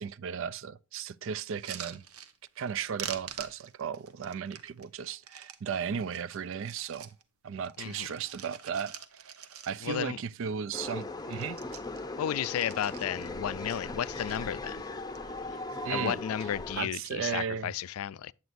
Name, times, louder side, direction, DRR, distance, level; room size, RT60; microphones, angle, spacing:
voice 1, 0.0-2.0 2.6-7.1 7.4-9.3 9.7-11.6 15.8-16.2 16.8-17.7, right 7 dB, 60° right, 0.4 m, -35 dB
sound 1, 1.5-2.7 3.0-5.6 6.0-7.2 7.6-10.1 10.4-10.5 10.7-11.0 11.3-13.3 13.7-14.4 14.9-15.4 15.7-16.2 17.1-17.4, right 8 dB, 85° right, 1.0 m, -45 dB
voice 2, 9.8-10.2 12.2-14.8 15.9-18.3, left 9 dB, 80° left, 0.3 m, -33 dB
sound 2, 10.7-16.8, left 2 dB, 20° left, 0.6 m, -38 dB
9.4 x 8.0 x 2.5 m
head